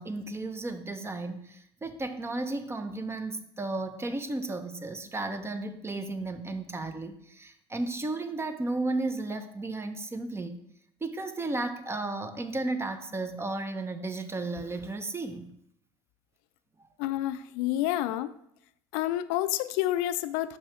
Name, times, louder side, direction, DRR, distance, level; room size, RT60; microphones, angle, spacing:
voice 1, 0.0-10.6 11.0-15.5 17.8-17.9, right 2 dB, 20° right, 9 dB, 0.7 m, -34 dB
voice 2, 17.0-18.3 18.9-20.6, left 14 dB, 70° left, 14 dB, 0.4 m, -29 dB
5.7 x 5.4 x 3.1 m, 0.74 s
hypercardioid pair, 70°, 13 cm